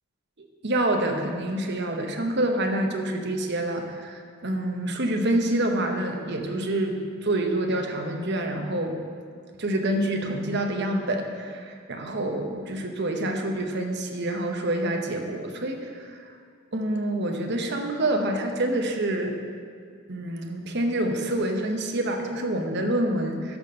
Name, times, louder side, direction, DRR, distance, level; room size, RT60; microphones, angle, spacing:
voice 1, 0.4-9.0 9.6-16.2 16.7-19.4 20.1-23.6, right 1 dB, 50° right, 4 dB, 0.9 m, -27 dB
11.5 x 4.2 x 6.6 m, 2.2 s
head